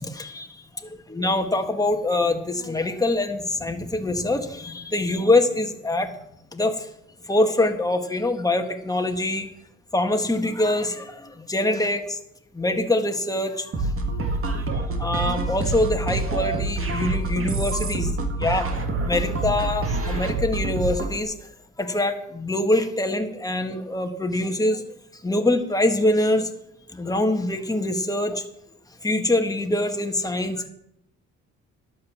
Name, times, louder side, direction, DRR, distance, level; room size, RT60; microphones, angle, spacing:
voice 1, 0.0-6.1 6.5-6.9 7.2-9.5 9.9-12.2 12.5-13.9 15.0-18.7 19.0-21.3 21.8-26.5 26.9-28.4 29.0-30.7, left 1 dB, 10° left, 4 dB, 1.7 m, -24 dB
sound 1, 13.7-21.2, right 2 dB, 45° right, 2.0 m, -26 dB
11.5 x 6.8 x 7.3 m, 0.76 s
cardioid pair, 90°, 30 cm